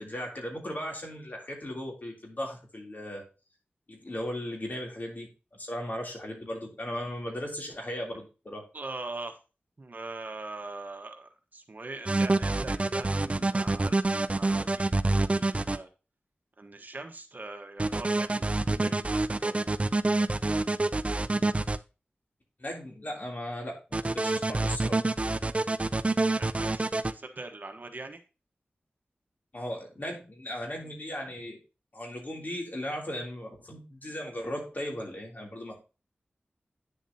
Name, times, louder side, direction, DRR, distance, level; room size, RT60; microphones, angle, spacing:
voice 1, 0.0-3.2 3.9-5.3 5.6-8.6 22.6-25.0 29.5-31.6 31.9-35.8, left 1 dB, 50° left, 0 dB, 3.1 m, -37 dB
voice 2, 8.7-9.4 9.8-15.9 16.6-19.5 26.3-28.2, right 2 dB, 50° right, 6 dB, 1.3 m, -42 dB
sound 1, 12.1-15.8 17.8-21.8 23.9-27.1, right 2 dB, 30° right, 0.5 m, -26 dB
9.6 x 7.1 x 2.8 m, 0.31 s
wide cardioid pair, 65°, 4 cm